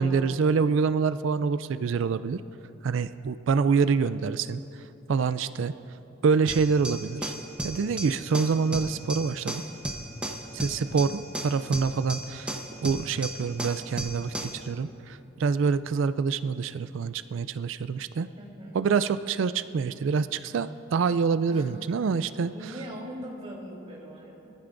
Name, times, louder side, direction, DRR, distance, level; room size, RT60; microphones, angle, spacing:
voice 1, 0.0-2.4 2.8-4.6 5.1-5.7 6.2-7.3 7.6-9.6 10.5-12.5 12.8-18.3 18.7-22.5, right 5 dB, 65° right, 13 dB, 0.3 m, -26 dB
sound 1, 6.5-14.6, right 1 dB, 5° right, 0.9 m, -35 dB
voice 2, 10.5-11.0 18.4-18.8 21.5-21.8 22.5-24.5, equal, 30° right, -5 dB, 3.3 m, -41 dB
23.0 x 14.5 x 2.6 m, 2.9 s
head